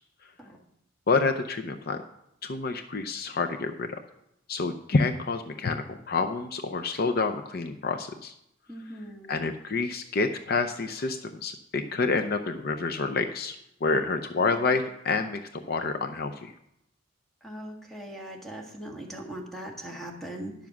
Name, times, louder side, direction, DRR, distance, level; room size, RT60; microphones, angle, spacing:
voice 1, 1.1-2.0 2.4-3.9 4.5-8.3 9.3-13.6 13.8-16.5, left 4 dB, 55° left, 6 dB, 0.6 m, -28 dB
voice 2, 8.7-9.4 14.4-14.8 17.4-20.5, right 1 dB, ahead, -1 dB, 1.7 m, -40 dB
10.5 x 7.2 x 5.9 m, 0.78 s
head